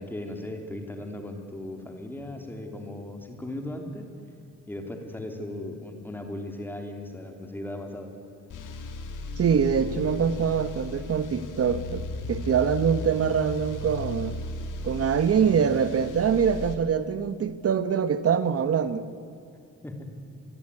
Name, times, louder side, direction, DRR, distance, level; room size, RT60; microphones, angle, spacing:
voice 1, 0.0-4.1 4.7-8.1 19.8-20.1, left 1 dB, 5° left, 4 dB, 3.2 m, -37 dB
sound 1, 8.5-16.7, left 3 dB, 85° left, 2.9 m, -36 dB
voice 2, 9.4-14.4 14.8-19.1, right 7 dB, 50° right, 12 dB, 1.1 m, -24 dB
27.0 x 22.0 x 9.8 m, 2.7 s
wide cardioid pair, 165°, 30 cm